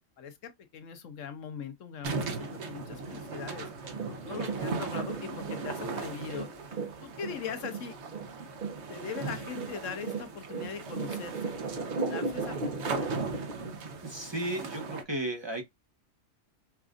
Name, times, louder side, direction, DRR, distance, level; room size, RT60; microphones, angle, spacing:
voice 1, 0.2-8.0 8.9-11.5 12.0-13.1, left 7 dB, 90° left, 1.2 m, -41 dB
sound 1, 2.0-15.0, right 4 dB, 65° right, 1.1 m, -38 dB
sound 2, 3.8-14.1 14.5-14.6, right 4 dB, 45° right, 1.1 m, -37 dB
voice 2, 14.0-15.6, right 1 dB, 25° right, 0.9 m, -34 dB
5.9 x 2.5 x 2.4 m
omnidirectional pair, 1.3 m